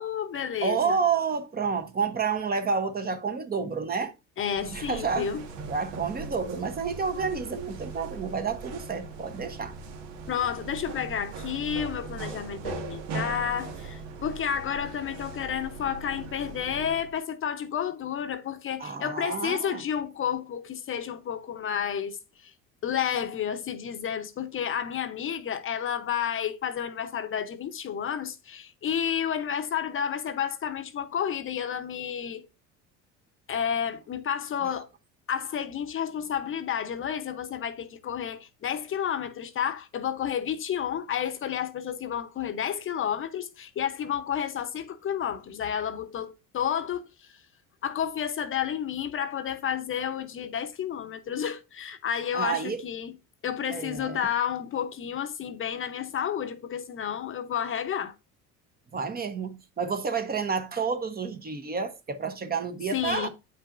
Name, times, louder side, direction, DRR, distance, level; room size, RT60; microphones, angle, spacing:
voice 1, 0.0-1.0 4.4-5.4 10.3-22.2 22.4-22.5 22.8-32.5 33.5-34.9 35.3-47.3 47.8-53.1 53.4-58.1 62.9-63.3, left 8 dB, 35° left, 0.8 m, -31 dB
voice 2, 0.6-4.1 4.6-5.3 5.7-9.7 18.8-19.8 34.6-34.7 52.3-52.8 53.7-54.3 58.9-63.3, right 5 dB, 25° right, 0.9 m, -30 dB
sound 1, 4.5-17.2, right 4 dB, 75° right, 1.5 m, -40 dB
8.7 x 5.5 x 2.5 m
supercardioid pair, 95°, 35 cm